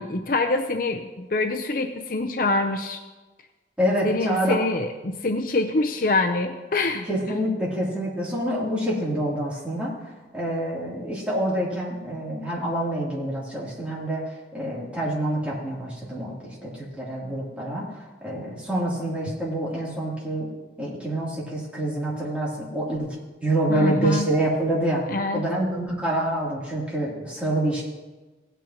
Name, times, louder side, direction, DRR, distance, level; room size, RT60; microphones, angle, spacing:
voice 1, 0.0-3.0 4.0-7.4 23.7-24.3 25.1-25.4, left 2 dB, 50° left, 5 dB, 0.6 m, -25 dB
voice 2, 3.8-4.6 7.1-9.9 10.3-14.2 14.5-20.5 20.8-23.1 23.4-25.0 25.3-27.8, right 1 dB, 5° right, -7 dB, 2.9 m, -26 dB
17.0 x 9.0 x 2.9 m, 1.2 s
head